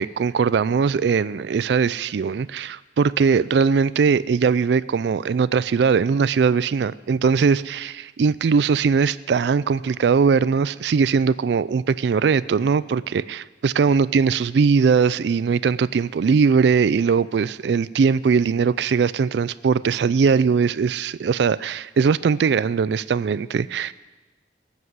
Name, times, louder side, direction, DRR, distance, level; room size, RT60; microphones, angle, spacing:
voice 1, 0.0-23.9, right 5 dB, 70° right, 18 dB, 0.3 m, -20 dB
18.5 x 7.4 x 8.0 m, 1.2 s
head